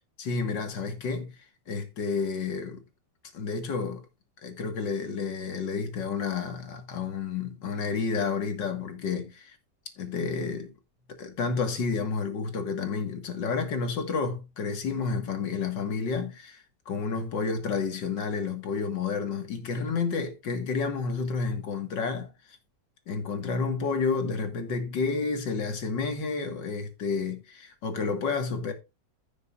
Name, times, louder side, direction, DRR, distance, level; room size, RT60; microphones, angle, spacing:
voice 1, 0.2-1.3 1.7-2.8 3.3-4.0 4.4-9.6 10.0-10.7 11.1-22.3 23.1-28.7, left 5 dB, 75° left, 2.4 m, -30 dB
15.5 x 6.6 x 2.5 m
omnidirectional pair, 1.9 m